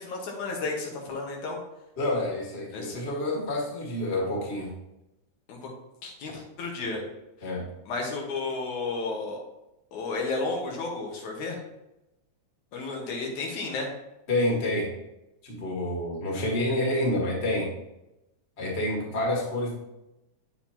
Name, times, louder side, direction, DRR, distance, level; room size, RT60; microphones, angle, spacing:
voice 1, 0.0-1.6 2.7-3.0 5.5-5.7 6.0-7.0 7.9-9.4 9.9-11.6 12.7-13.9, left 3 dB, 85° left, 0 dB, 2.8 m, -32 dB
voice 2, 2.0-4.7 7.4-7.7 14.3-14.9 15.4-17.7 18.6-19.7, left 1 dB, 25° left, -2 dB, 1.6 m, -28 dB
8.7 x 6.8 x 2.9 m, 0.91 s
omnidirectional pair, 3.3 m